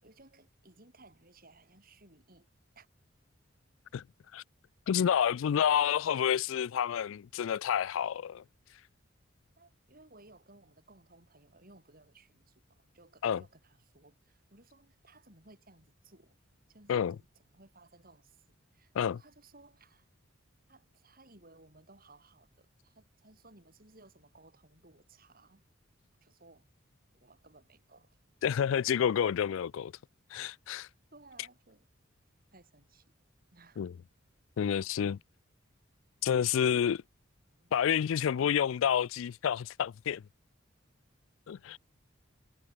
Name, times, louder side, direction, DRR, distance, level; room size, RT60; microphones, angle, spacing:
voice 1, 0.0-2.9 9.6-16.4 16.7-20.1 20.7-25.6 26.2-26.7 27.1-28.5 31.1-31.9 32.5-33.1 33.5-33.8 37.6-37.8, right 2 dB, 45° right, 7.4 m, -60 dB
voice 2, 4.9-8.4 13.2-13.4 16.9-17.2 19.0-19.2 28.4-29.9 30.3-30.9 33.8-33.9 34.6-35.2 36.2-37.0 37.7-40.2 41.5-41.8, left 8 dB, 80° left, 0.3 m, -29 dB
head